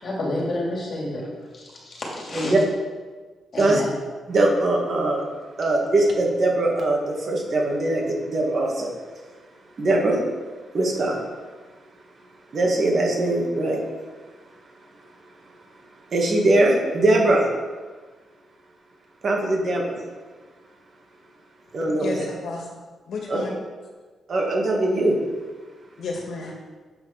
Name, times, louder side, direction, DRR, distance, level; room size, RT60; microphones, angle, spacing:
voice 1, 0.0-1.3 1.5-2.6 3.5-3.9, left 1 dB, 40° left, -3 dB, 2.9 m, -29 dB
voice 2, 4.3-5.2 5.6-8.9 9.8-10.2 10.7-11.2 12.5-13.8 16.1-17.5 19.2-20.0 21.7-22.2 24.3-25.2, right 2 dB, 45° right, -1 dB, 1.9 m, -21 dB
voice 3, 21.9-22.8 23.1-23.6 26.0-26.5, left 3 dB, 70° left, 0 dB, 1.8 m, -32 dB
8.0 x 6.0 x 5.9 m, 1.4 s
cardioid pair, 135°, 0 cm